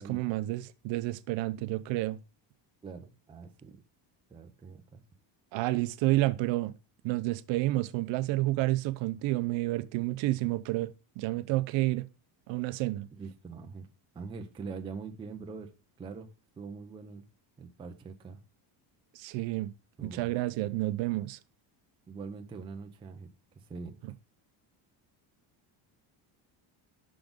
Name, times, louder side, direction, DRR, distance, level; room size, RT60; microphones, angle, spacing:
voice 1, 0.0-2.2 5.5-6.7 7.0-12.1 12.5-13.1 19.1-19.7 20.0-21.4, right 18 dB, 65° right, 0.6 m, -30 dB
voice 2, 2.8-3.8 4.3-5.0 13.1-13.9 14.1-15.7 16.0-16.3 16.6-17.2 17.6-18.4 20.0-20.3 22.1-23.3 23.6-24.0, right 4 dB, 10° right, 0.3 m, -43 dB
6.0 x 3.7 x 5.2 m
cardioid pair, 175°, 49 cm